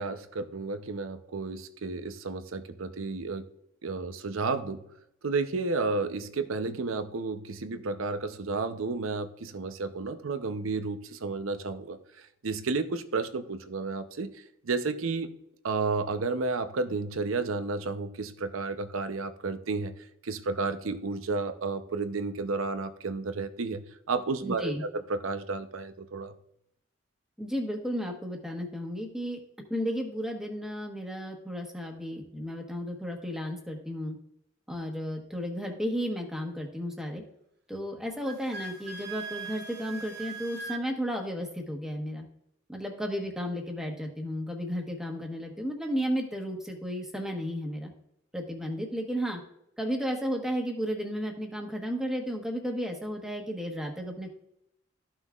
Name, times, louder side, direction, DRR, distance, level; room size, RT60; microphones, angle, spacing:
voice 1, 0.0-3.5 3.8-4.8 5.2-12.0 12.4-14.3 14.6-15.4 15.6-19.9 20.2-26.3, right 3 dB, 80° right, 10 dB, 0.7 m, -32 dB
voice 2, 24.4-24.8 27.4-29.4 29.7-34.2 34.7-37.2 37.7-42.2 42.7-47.9 48.3-49.4 49.8-54.3, equal, 5° right, 1 dB, 1.2 m, -33 dB
Wind instrument woodwind instrument, 38.2-40.8, right 4 dB, 50° right, 0.9 m, -40 dB
13.5 x 5.8 x 2.4 m, 0.77 s
head